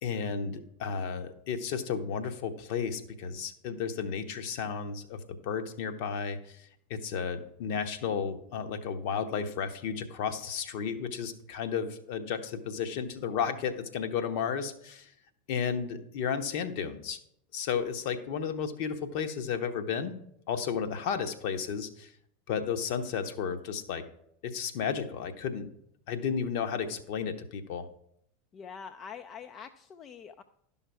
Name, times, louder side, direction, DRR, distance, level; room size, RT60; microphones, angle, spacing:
voice 1, 0.0-15.1 15.5-17.2 17.5-20.2 20.5-22.1 22.5-24.0 24.4-25.7 26.1-27.9, left 6 dB, 50° left, 8 dB, 1.0 m, -33 dB
voice 2, 28.5-30.4, left 7 dB, 30° left, 8 dB, 0.5 m, -45 dB
11.5 x 5.7 x 4.7 m, 0.71 s
figure-of-eight pair, 85°, 0 cm